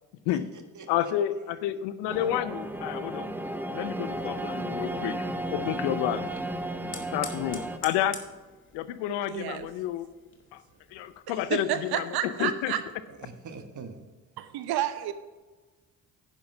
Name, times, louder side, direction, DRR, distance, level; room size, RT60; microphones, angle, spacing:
voice 1, 0.3-1.9 4.1-4.4 5.6-6.2 10.7-11.0 13.1-14.0, right 4 dB, 45° right, 6 dB, 1.4 m, -47 dB
voice 2, 0.9-3.4 3.7-5.3 5.5-6.2 7.1-8.2 8.7-10.1 10.5-10.6 10.9-12.7, left 11 dB, 70° left, 14 dB, 0.7 m, -30 dB
sound 1, 2.1-7.8, right 1 dB, 5° right, 0.8 m, -34 dB
Fire, 4.0-11.2, left 4 dB, 25° left, 2.0 m, -47 dB
voice 3, 9.3-9.7 11.5-12.8 14.4-15.1, right 11 dB, 60° right, 11 dB, 0.8 m, -30 dB
10.5 x 5.9 x 5.3 m, 1.3 s
hypercardioid pair, 45°, 43 cm